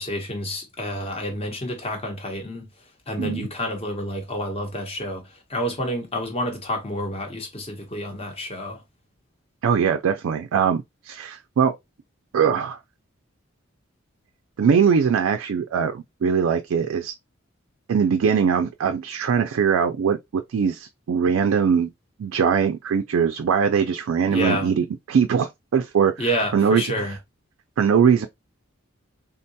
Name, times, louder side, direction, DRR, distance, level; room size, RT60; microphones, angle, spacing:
voice 1, 0.0-2.6 3.1-5.2 5.5-8.8 24.3-24.7 26.2-27.1, equal, 30° left, 0.9 m, -29 dB
voice 2, 3.2-3.5 9.6-11.7 12.3-12.8 14.6-17.1 17.9-21.9 22.2-27.2 27.8-28.3, right 6 dB, 80° right, 0.4 m, -21 dB
3.7 x 2.2 x 2.7 m
head